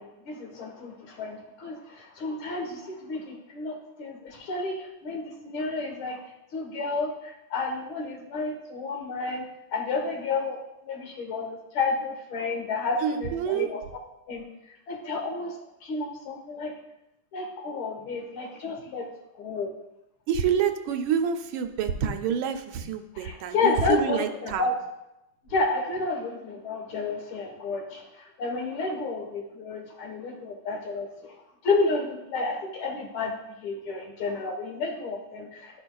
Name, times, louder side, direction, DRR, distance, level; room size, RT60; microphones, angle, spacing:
voice 1, 0.0-6.2 6.5-9.5 9.7-10.6 10.9-13.8 14.3-14.4 14.9-15.5 15.8-16.7 17.3-19.1 19.3-19.7 23.2-24.7 25.5-31.4 31.6-35.8, left 3 dB, 85° left, 1 dB, 2.1 m, -31 dB
voice 2, 13.0-13.7 20.3-24.6, right 7 dB, 80° right, 7 dB, 1.4 m, -27 dB
12.0 x 5.1 x 2.3 m, 0.88 s
omnidirectional pair, 2.2 m